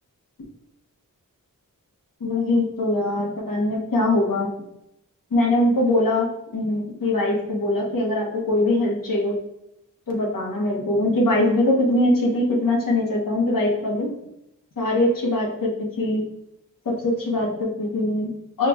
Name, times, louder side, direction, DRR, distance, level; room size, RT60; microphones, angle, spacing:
voice 1, 2.2-4.5 5.3-9.4 10.1-14.1 14.8-16.3 17.0-18.7, left 1 dB, 75° left, -2 dB, 1.0 m, -22 dB
5.6 x 2.4 x 2.3 m, 0.81 s
wide cardioid pair, 90°, 33 cm